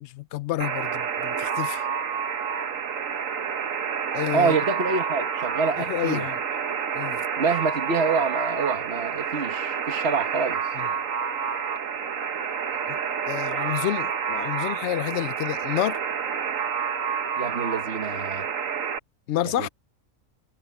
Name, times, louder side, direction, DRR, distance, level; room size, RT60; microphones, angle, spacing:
voice 1, 0.0-1.8 4.1-4.5 5.8-6.4 6.9-7.2 10.8-10.9 12.9-13.0 13.3-16.0 19.3-19.7, left 14 dB, 65° left, 0.8 m, -29 dB
Alarm, 0.6-19.0, right 7 dB, 75° right, 1.5 m, -29 dB
voice 2, 4.3-6.3 7.4-10.6 17.4-18.5 19.6-19.7, right 4 dB, 50° right, 1.7 m, -26 dB
omnidirectional pair, 1.4 m